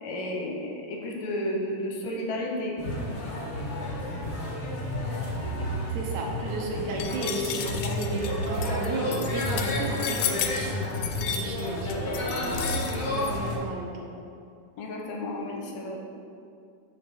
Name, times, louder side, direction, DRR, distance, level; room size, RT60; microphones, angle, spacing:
voice 1, 0.0-2.7 14.8-16.0, left 1 dB, 70° left, 0 dB, 2.2 m, -32 dB
sound 1, 2.8-13.6, left 1 dB, 50° left, 1.9 m, -31 dB
voice 2, 5.9-10.8 11.1-13.9, right 2 dB, 75° right, -1 dB, 2.2 m, -34 dB
sound 2, 7.0-13.3, left 8 dB, 90° left, 2.1 m, -33 dB
5.8 x 5.3 x 6.6 m, 2.4 s
omnidirectional pair, 3.6 m